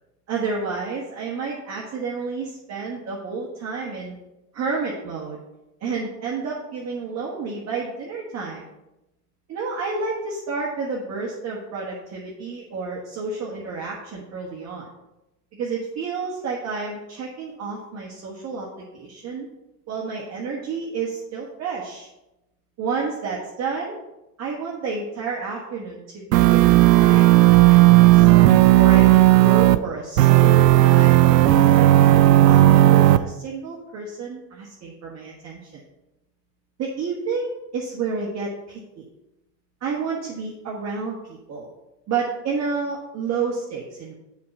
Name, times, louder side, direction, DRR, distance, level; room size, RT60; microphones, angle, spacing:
voice 1, 0.3-4.1 4.5-5.4 5.8-8.6 9.5-14.9 15.5-19.5 19.9-22.1 22.8-24.0 24.4-27.3 27.6-28.3 28.7-35.8 36.8-39.0 39.8-41.7 42.1-44.1, right 4 dB, 30° right, -4 dB, 1.5 m, -30 dB
sound 1, 26.3-29.8 30.2-33.2, right 15 dB, 80° right, 0.5 m, -13 dB
7.5 x 4.7 x 5.4 m, 0.96 s
hypercardioid pair, 85°, 49 cm